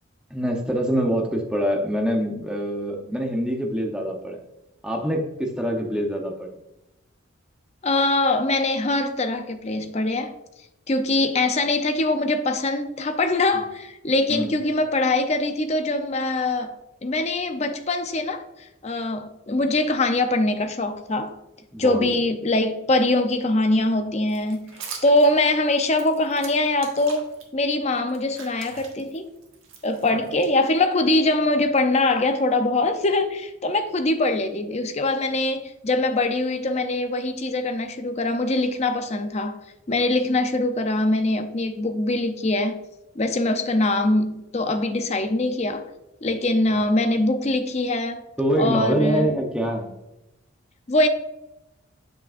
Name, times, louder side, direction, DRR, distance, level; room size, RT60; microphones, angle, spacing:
voice 1, 0.3-4.4 4.8-6.5 13.5-13.6 14.3-14.5 21.7-22.1 48.4-49.9, equal, 5° right, 0.7 m, -25 dB
voice 2, 7.8-10.4 10.9-16.8 17.0-18.4 18.8-21.4 21.8-29.3 29.8-39.6 39.9-42.8 43.2-45.9 46.2-48.2 48.6-49.3 50.9-51.1, left 2 dB, 35° left, 0.5 m, -23 dB
sound 1, 24.3-27.4 27.9-31.0, right 5 dB, 80° right, 1.4 m, -42 dB
7.7 x 5.8 x 2.5 m
head